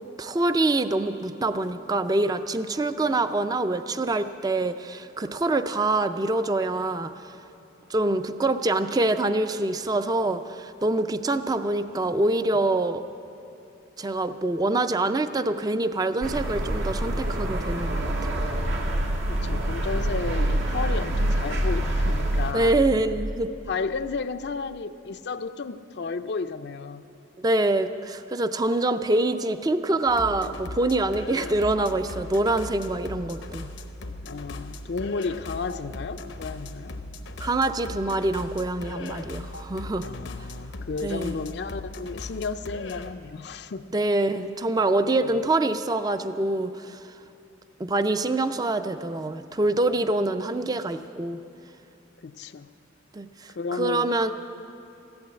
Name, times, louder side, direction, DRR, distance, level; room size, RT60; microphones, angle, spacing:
voice 1, 0.2-7.1 7.9-13.0 14.0-18.5 22.5-23.5 27.4-33.7 37.4-40.1 41.0-41.4 43.9-47.0 47.8-51.4 53.1-54.3, right 2 dB, 20° right, 10 dB, 0.4 m, -25 dB
sound 1, 16.2-22.5, right 1 dB, 80° right, 1.7 m, -26 dB
voice 2, 19.2-22.8 23.7-27.1 31.1-31.5 34.3-37.0 40.0-43.9 45.2-45.3 52.2-52.7 53.6-54.1, left 4 dB, 60° left, 9 dB, 0.5 m, -33 dB
sound 2, 30.1-43.1, left 2 dB, 80° left, 0.8 m, -38 dB
15.0 x 11.5 x 8.1 m, 2.8 s
head